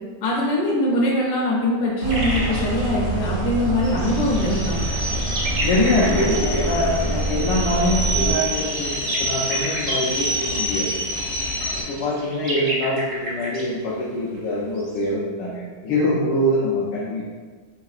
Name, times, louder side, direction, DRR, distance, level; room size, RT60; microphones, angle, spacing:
voice 1, 0.2-4.8, left 1 dB, 70° left, -4 dB, 1.2 m, -22 dB
sound 1, 2.0-8.3, right 2 dB, 80° right, 1.8 m, -26 dB
sound 2, 2.1-2.7 3.8-6.4 7.9-14.4 14.8-15.0, right 1 dB, 55° right, 0.5 m, -31 dB
sound 3, 4.0-11.8, equal, 55° left, 0.8 m, -28 dB
voice 2, 5.6-10.9 11.8-17.2, left 1 dB, 90° left, -6 dB, 1.3 m, -24 dB
5.2 x 2.8 x 2.4 m, 1.5 s
omnidirectional pair, 1.9 m